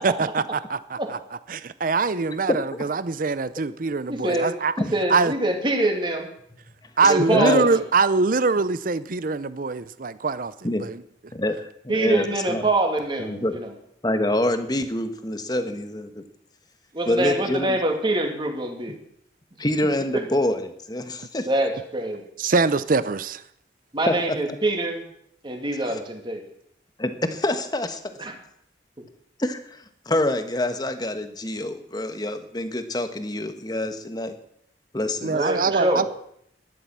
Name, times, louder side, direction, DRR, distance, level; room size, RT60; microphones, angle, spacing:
voice 1, 0.0-1.2 1.5-4.7 5.1-5.3 7.0-10.5 10.8-11.0 22.4-23.4 35.2-36.1, right 4 dB, 50° right, 0.6 m, -23 dB
voice 2, 2.1-2.6 4.3-4.4 4.8-4.9 7.0-7.7 10.6-10.8 11.3-12.6 13.2-13.5 14.0-16.2 17.1-17.8 19.6-21.5 24.1-24.4 25.9-26.0 27.0-28.0 29.4-34.3 34.9-35.5, left 1 dB, 20° left, 1.3 m, -26 dB
voice 3, 4.1-4.5 4.9-6.3 7.0-7.8 11.9-13.7 16.9-18.9 21.5-22.2 23.9-25.0 25.4-26.4 28.2-28.4 35.3-36.0, right 1 dB, 25° right, 2.5 m, -25 dB
13.0 x 11.5 x 7.4 m
head